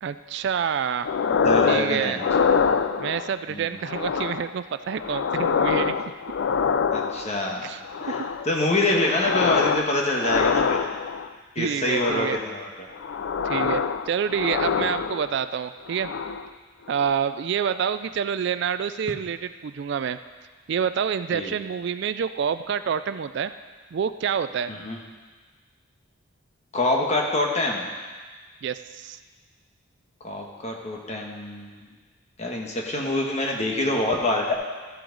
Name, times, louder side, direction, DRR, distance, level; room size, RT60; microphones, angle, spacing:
voice 1, 0.0-1.1 1.7-2.2 3.0-6.0 7.6-7.8 11.6-12.4 13.4-16.1 16.9-20.2 20.7-23.5 23.9-24.7 28.6-29.2, right 7 dB, 55° right, 12 dB, 0.3 m, -27 dB
sound 1, 1.0-1.9 2.2-3.3 3.8-4.5 4.9-7.4 7.8-8.5 8.9-9.9 10.2-11.3 11.9-12.5 12.9-15.4 15.9-16.5 16.9-17.1, left 6 dB, 60° left, 0.4 m, -25 dB
voice 2, 1.3-2.2 3.5-3.8 6.9-7.7 8.0-10.8 11.5-12.9 21.3-21.5 24.7-25.0 26.7-27.8 30.2-31.9 32.4-34.5, left 2 dB, 30° left, 0 dB, 1.3 m, -26 dB
13.5 x 7.6 x 3.9 m, 1.4 s
head